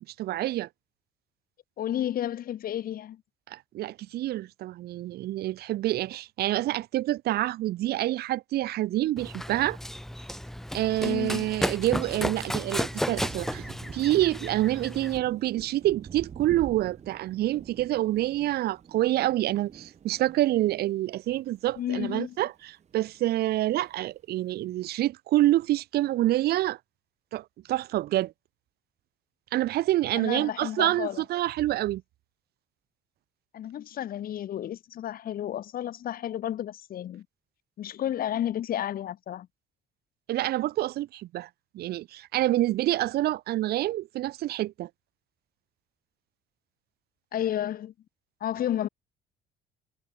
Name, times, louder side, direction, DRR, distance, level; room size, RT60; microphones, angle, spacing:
voice 1, 0.2-0.7 3.5-9.8 10.7-13.6 13.9-26.8 27.3-28.3 29.5-32.0 40.3-41.5 41.7-44.9, right 15 dB, 70° right, 1.1 m, -27 dB
voice 2, 1.8-3.2 11.0-11.5 21.8-22.4 30.1-31.2 33.5-37.2 37.8-39.5 47.3-47.9 48.4-48.9, left 11 dB, 60° left, 4.8 m, -32 dB
Run, 9.2-15.2, equal, ahead, 4.1 m, -33 dB
Thunder, 12.7-22.5 22.8-23.9, right 7 dB, 40° right, 4.6 m, -46 dB
cardioid pair, 110°, 17 cm